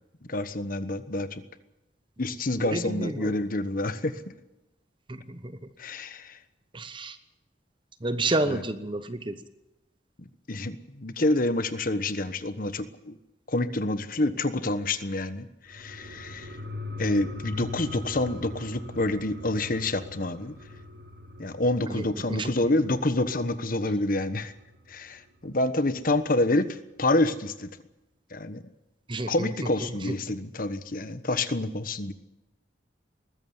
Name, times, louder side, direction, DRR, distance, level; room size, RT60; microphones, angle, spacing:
voice 1, 0.3-1.4 2.2-4.1 5.8-6.4 8.4-8.6 10.5-13.1 13.5-16.6 17.0-20.5 21.4-24.5 24.9-26.7 27.0-27.7 28.3-28.6 29.3-32.1, left 2 dB, 50° left, 12 dB, 1.2 m, -27 dB
voice 2, 2.6-3.3 5.1-5.6 6.7-7.2 8.0-9.3 21.9-22.5 29.1-29.5 29.8-30.2, right 2 dB, 25° right, 11 dB, 0.9 m, -30 dB
sound 1, 15.7-24.8 25.1-25.2, left 2 dB, 75° right, 5.0 m, -42 dB
20.5 x 14.5 x 9.6 m, 0.98 s
head